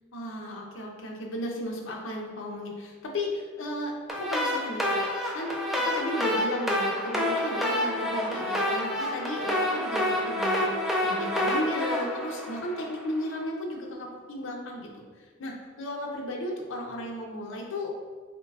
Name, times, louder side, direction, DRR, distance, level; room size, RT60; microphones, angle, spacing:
voice 1, 0.1-15.0 15.4-17.9, left 1 dB, 65° left, 0 dB, 0.6 m, -34 dB
sound 1, 4.1-13.2, left 1 dB, ahead, 0.4 m, -28 dB
3.7 x 3.1 x 2.3 m, 1.5 s
head